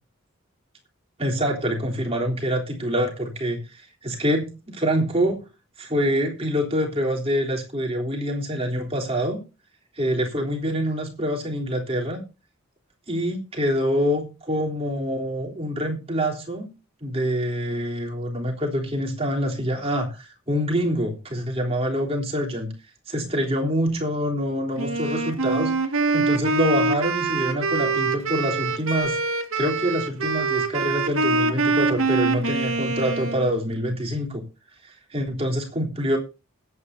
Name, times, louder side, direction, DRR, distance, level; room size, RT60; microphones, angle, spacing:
voice 1, 1.2-5.4 5.8-9.4 10.0-12.2 13.1-16.7 17.0-22.7 23.1-25.7 26.1-29.2 29.6-34.4 34.8-36.2, equal, 30° right, 0 dB, 3.5 m, -25 dB
Wind instrument woodwind instrument, 24.8-33.5, right 3 dB, 85° right, 2.2 m, -24 dB
20.5 x 9.0 x 2.8 m, 0.30 s
head